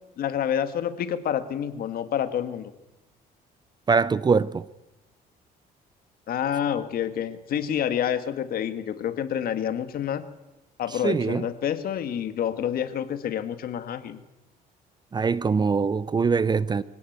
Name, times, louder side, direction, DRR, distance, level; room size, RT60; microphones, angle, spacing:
voice 1, 0.2-2.7 6.3-10.2 10.8-14.2, left 9 dB, 60° left, 2.0 m, -28 dB
voice 2, 3.9-4.7 11.0-11.5 15.1-16.8, right 5 dB, 25° right, 0.7 m, -23 dB
24.5 x 17.0 x 8.2 m
cardioid pair, 110°, 17 cm